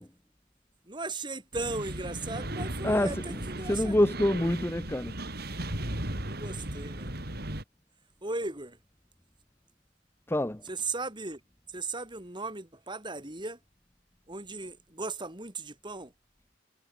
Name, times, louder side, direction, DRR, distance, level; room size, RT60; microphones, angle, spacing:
voice 1, 0.9-4.3 6.2-7.1 8.2-8.8 10.6-11.4 11.7-13.6 14.3-16.1, right 3 dB, 25° right, 3.2 m, -37 dB
sound 1, 1.5-7.6, right 1 dB, 55° right, 5.0 m, -36 dB
voice 2, 3.7-5.1 10.3-10.6, left 1 dB, 10° left, 0.8 m, -26 dB
head